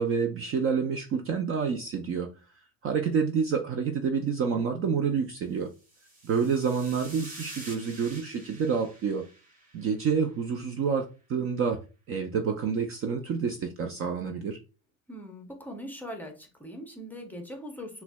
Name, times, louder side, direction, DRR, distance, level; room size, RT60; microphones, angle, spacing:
voice 1, 0.0-2.3 2.8-5.7 6.2-9.2 9.7-11.8 12.1-14.6, right 6 dB, 35° right, 0.4 m, -28 dB
sound 1, 5.7-10.2, right 1 dB, 20° right, 1.4 m, -47 dB
voice 2, 15.1-18.0, equal, 5° left, 0.6 m, -41 dB
5.7 x 2.1 x 2.2 m
supercardioid pair, 125°, 40 cm